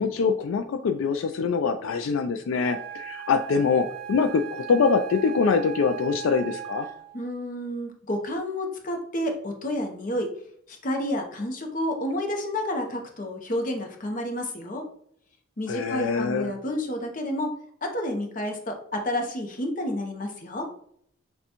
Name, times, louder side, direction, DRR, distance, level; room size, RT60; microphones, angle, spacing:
voice 1, 0.0-6.9 15.7-16.5, left 5 dB, 70° left, 6 dB, 0.3 m, -24 dB
Wind instrument woodwind instrument, 2.6-7.2, right 9 dB, 45° right, 0.5 m, -38 dB
voice 2, 7.1-10.3 10.7-14.9 15.6-17.5 17.8-20.7, left 1 dB, 40° left, 3 dB, 0.7 m, -30 dB
6.5 x 2.2 x 2.9 m, 0.67 s
head